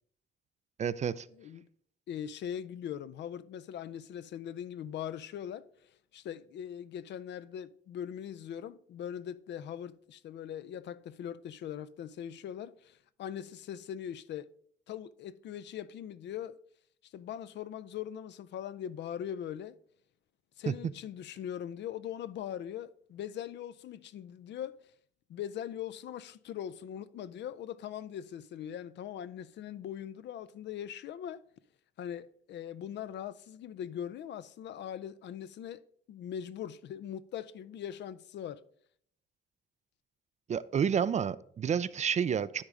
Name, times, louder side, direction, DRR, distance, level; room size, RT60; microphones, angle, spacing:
voice 1, 0.8-1.3 20.7-20.8 40.5-42.6, right 7 dB, 35° right, 0.4 m, -30 dB
voice 2, 1.4-1.7 2.1-5.7 6.1-14.5 14.9-16.6 17.1-19.8 20.6-24.7 25.3-31.4 32.0-35.8 36.1-38.6, left 9 dB, 65° left, 0.4 m, -41 dB
9.9 x 3.6 x 5.2 m
cardioid pair, 90°, 20 cm